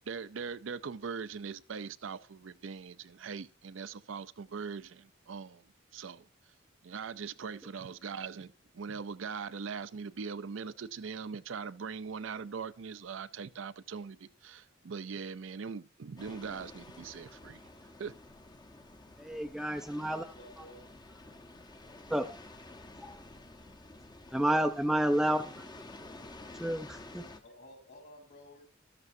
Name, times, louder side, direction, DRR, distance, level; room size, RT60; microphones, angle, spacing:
voice 1, 0.1-5.6 5.9-6.3 6.8-17.6 18.0-18.1, right 5 dB, 70° right, 0.5 m, -41 dB
sound 1, 16.2-27.4, left 2 dB, 20° left, 0.9 m, -51 dB
voice 2, 19.2-20.3 22.1-22.4 23.0-23.1 24.3-25.7 26.6-27.2, right 1 dB, ahead, 0.5 m, -30 dB
voice 3, 20.4-20.9 27.4-28.6, left 1 dB, 55° left, 3.6 m, -53 dB
13.5 x 12.5 x 2.7 m
head